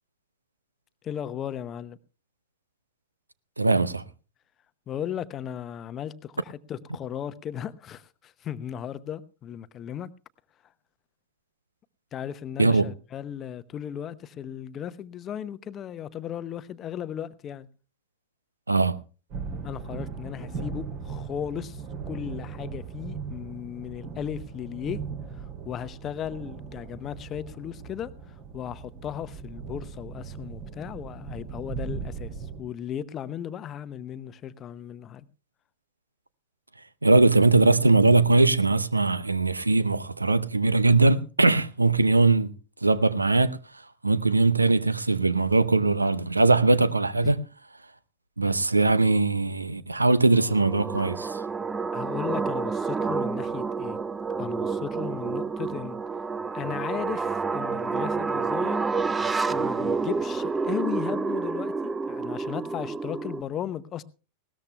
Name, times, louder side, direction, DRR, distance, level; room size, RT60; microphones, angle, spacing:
voice 1, 1.0-2.0 4.9-10.1 12.1-17.7 19.6-25.0 25.3-35.3 42.1-42.2 47.2-47.4 51.9-54.0 54.4-56.0 56.5-58.9 59.5-64.0, left 9 dB, 30° left, 0.8 m, -36 dB
voice 2, 3.6-4.0 12.6-12.9 18.7-19.0 37.0-42.5 42.8-43.6 44.0-47.4 48.4-51.4, right 3 dB, 80° right, 0.7 m, -21 dB
sound 1, 19.3-32.6, right 5 dB, 45° right, 2.9 m, -38 dB
sound 2, 50.3-63.4, right 4 dB, 15° right, 0.6 m, -29 dB
20.0 x 18.0 x 2.2 m
figure-of-eight pair, 90°, 0 cm